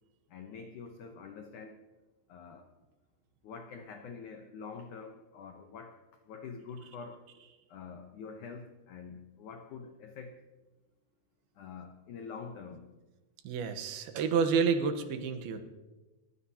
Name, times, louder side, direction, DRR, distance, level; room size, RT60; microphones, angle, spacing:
voice 1, 0.3-1.8 2.3-2.7 3.4-7.3 7.7-10.4 11.6-12.9, left 5 dB, 90° left, 5 dB, 1.7 m, -46 dB
voice 2, 13.4-15.6, right 6 dB, 75° right, 8 dB, 2.8 m, -29 dB
29.5 x 15.0 x 2.9 m, 1.1 s
omnidirectional pair, 4.9 m